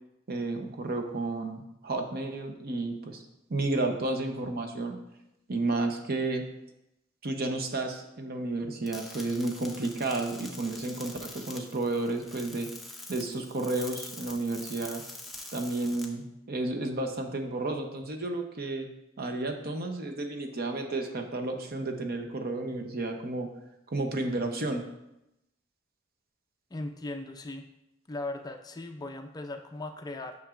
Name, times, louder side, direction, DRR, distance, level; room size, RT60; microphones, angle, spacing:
voice 1, 0.3-3.2 3.5-5.0 5.5-6.5 7.2-12.7 13.1-15.0 15.5-18.9 19.2-23.5 23.9-24.9, right 2 dB, 50° right, 4 dB, 0.8 m, -32 dB
sound 1, 8.9-16.0, left 1 dB, ahead, 0.8 m, -45 dB
voice 2, 26.7-27.6 28.1-30.3, left 2 dB, 20° left, 5 dB, 0.4 m, -38 dB
8.7 x 6.1 x 2.4 m, 0.88 s
head